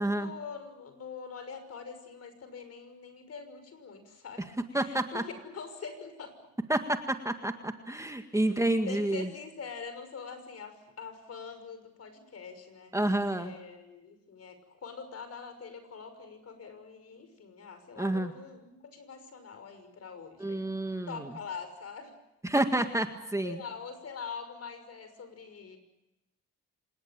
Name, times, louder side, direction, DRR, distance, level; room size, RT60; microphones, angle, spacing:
voice 1, 0.0-6.4 8.3-12.9 13.4-20.7 21.1-22.1 23.4-25.8, left 5 dB, 55° left, 9 dB, 6.1 m, -44 dB
voice 2, 4.7-5.2 6.7-9.3 12.9-13.5 18.0-18.3 20.4-21.1 22.4-23.1 23.3-23.6, right 1 dB, 10° right, 6 dB, 1.9 m, -29 dB
26.5 x 20.0 x 8.9 m, 0.94 s
cardioid pair, 90°, 30 cm